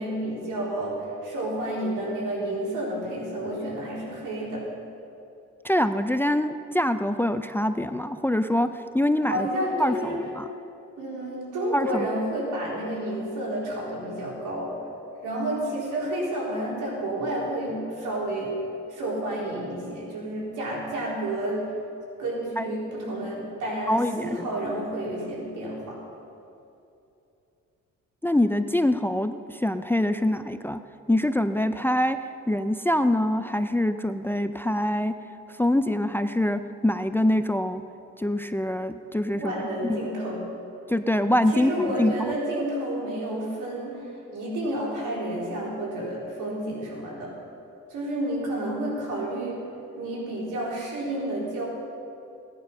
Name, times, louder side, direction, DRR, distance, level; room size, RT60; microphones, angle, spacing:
voice 1, 0.0-4.7 9.3-10.2 11.0-14.7 15.2-18.6 18.9-21.7 22.2-26.0 39.3-40.4 41.5-47.3 47.9-49.6 50.0-51.7, right 1 dB, 85° right, -4 dB, 4.2 m, -30 dB
voice 2, 5.6-9.5 9.8-10.5 11.7-12.1 22.6-22.7 23.9-24.5 28.2-30.8 31.1-32.2 32.5-35.1 35.6-37.8 38.2-40.0 40.9-42.3, left 1 dB, 5° left, 10 dB, 0.5 m, -24 dB
17.0 x 10.5 x 5.6 m, 2.7 s
cardioid pair, 90°, 30 cm